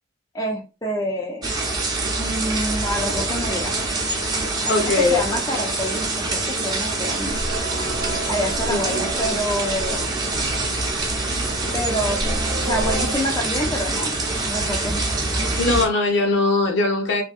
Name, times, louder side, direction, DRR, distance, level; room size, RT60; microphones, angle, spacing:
voice 1, 0.3-1.5 2.2-3.7 4.6-7.4 8.3-10.1 11.7-15.1, equal, 20° left, 0.5 m, -27 dB
sound 1, 1.4-15.9, right 2 dB, 20° right, 0.7 m, -25 dB
voice 2, 4.7-5.4 8.7-9.0 14.7-14.8 15.6-17.2, left 3 dB, 65° left, 0.8 m, -21 dB
sound 2, 7.1-13.2, right 1 dB, 65° right, 0.8 m, -31 dB
2.7 x 2.6 x 2.4 m
head